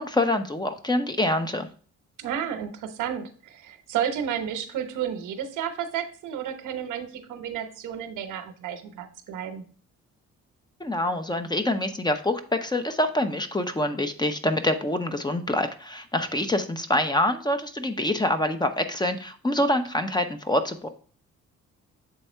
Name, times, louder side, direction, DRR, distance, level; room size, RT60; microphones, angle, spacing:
voice 1, 0.0-1.7 10.8-20.9, left 1 dB, 15° left, 8 dB, 0.8 m, -26 dB
voice 2, 2.2-9.6, right 9 dB, 90° right, 8 dB, 1.1 m, -32 dB
7.8 x 3.5 x 4.4 m, 0.43 s
cardioid pair, 90°, 30 cm